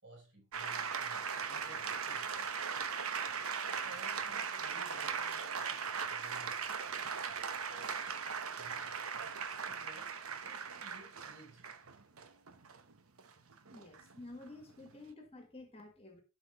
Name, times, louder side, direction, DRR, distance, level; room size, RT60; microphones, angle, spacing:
voice 1, 0.0-2.6 3.6-6.8 7.4-8.1 8.6-9.4 9.7-11.7, right 2 dB, 55° right, 5.3 m, -57 dB
sound 1, 0.5-15.0, right 6 dB, 75° right, 1.0 m, -39 dB
voice 2, 13.7-16.2, left 2 dB, 25° left, 1.6 m, -51 dB
12.0 x 5.0 x 3.6 m
head